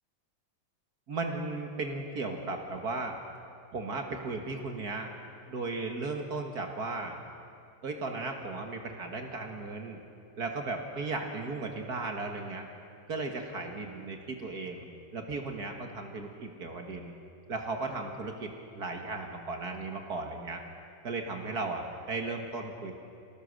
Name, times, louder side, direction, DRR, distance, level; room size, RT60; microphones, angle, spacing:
voice 1, 1.1-3.2 3.7-5.1 5.5-7.2 7.8-10.0 10.4-12.7 13.1-14.9 15.1-17.1 17.5-20.6 21.0-23.0, right 3 dB, 55° right, 3 dB, 2.0 m, -36 dB
25.0 x 18.5 x 6.5 m, 2.5 s
omnidirectional pair, 2.1 m